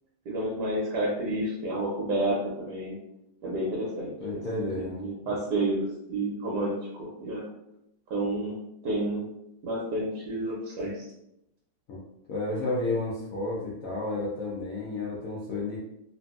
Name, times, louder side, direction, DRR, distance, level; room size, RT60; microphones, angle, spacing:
voice 1, 0.3-2.9 3.4-4.4 4.8-7.5 8.1-8.5 8.8-9.2 9.6-11.0, right 1 dB, 70° right, -4 dB, 1.1 m, -30 dB
voice 2, 4.2-5.4 11.9-12.0 12.3-15.8, left 2 dB, 70° left, -5 dB, 0.8 m, -32 dB
2.9 x 2.6 x 2.3 m, 0.81 s
omnidirectional pair, 2.0 m